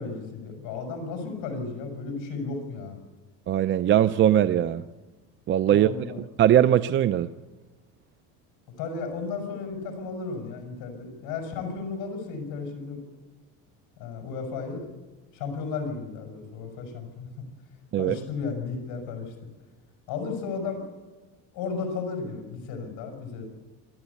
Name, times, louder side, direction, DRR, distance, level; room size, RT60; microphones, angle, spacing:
voice 1, 0.0-3.0 5.7-6.2 8.8-13.0 14.0-14.8 15.3-17.3 18.0-19.3 20.1-20.8 21.5-23.5, left 4 dB, 70° left, 4 dB, 5.9 m, -34 dB
voice 2, 3.5-4.8 5.5-5.9 6.2-7.3 17.9-18.2, right 11 dB, 35° right, 13 dB, 0.6 m, -21 dB
25.0 x 13.0 x 8.3 m, 1.2 s
cardioid pair, 140°, 33 cm